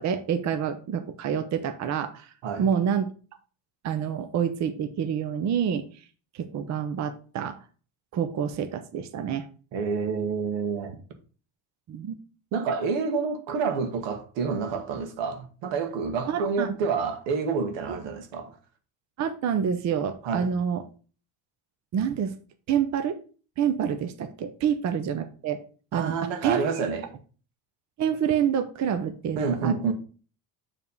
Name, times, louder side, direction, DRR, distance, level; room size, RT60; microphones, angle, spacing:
voice 1, 0.0-2.3 2.6-3.1 3.8-5.9 6.3-7.6 8.1-9.5 11.9-12.2 16.3-16.8 19.2-20.8 21.9-22.3 22.7-23.2 23.6-25.6 25.9-26.1 26.4-26.6 28.0-29.7, right 8 dB, 40° right, 0.7 m, -27 dB
voice 2, 9.7-11.0 12.5-18.6 20.2-20.5 25.9-27.0 29.4-29.9, right 5 dB, 85° right, 1.6 m, -28 dB
7.1 x 3.6 x 5.3 m
cardioid pair, 160°, 43 cm